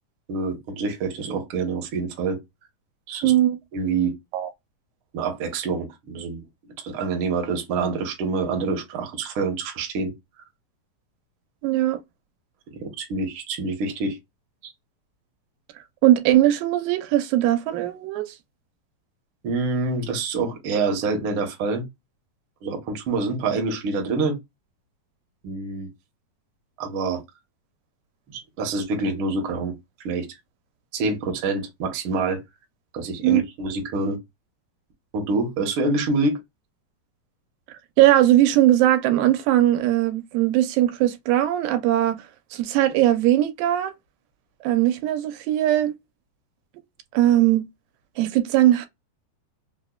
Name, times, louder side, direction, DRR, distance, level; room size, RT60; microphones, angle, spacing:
voice 1, 0.3-2.4 3.1-3.3 3.7-4.1 5.1-6.4 6.8-10.1 12.8-14.2 14.6-14.7 19.4-21.8 22.6-24.4 25.4-25.9 26.8-27.2 28.3-29.7 30.0-30.2 30.9-32.4 32.9-34.2 35.1-36.4, right 3 dB, 70° right, 1.2 m, -26 dB
voice 2, 3.2-3.6 4.3-4.5 11.6-12.0 16.0-18.3 33.2-33.4 38.0-42.2 42.5-43.9 44.6-45.9 47.1-47.7 48.2-48.9, right 13 dB, 85° right, 2.4 m, -19 dB
5.2 x 2.1 x 2.3 m
omnidirectional pair, 3.9 m